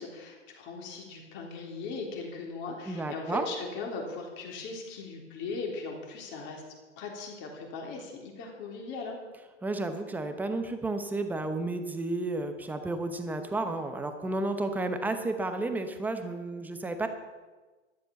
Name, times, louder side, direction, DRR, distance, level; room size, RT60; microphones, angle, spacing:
voice 1, 0.0-6.6 7.0-9.2, left 4 dB, 30° left, 1 dB, 3.5 m, -39 dB
voice 2, 2.9-3.4 9.6-17.1, right 2 dB, 5° right, 7 dB, 0.8 m, -32 dB
13.0 x 12.0 x 6.9 m, 1.3 s
hypercardioid pair, 150°, 37 cm